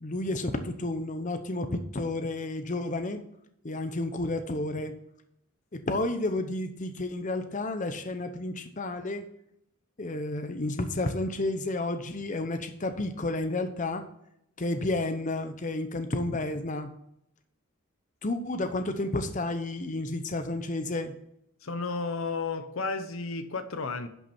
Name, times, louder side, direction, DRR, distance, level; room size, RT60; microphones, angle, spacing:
voice 1, 0.0-3.2 3.6-4.9 5.7-9.3 10.0-14.0 14.6-16.9 18.2-21.1, left 2 dB, 35° left, 0.8 m, -31 dB
voice 2, 21.6-24.1, left 4 dB, 65° left, 0.9 m, -32 dB
11.0 x 5.9 x 4.4 m
head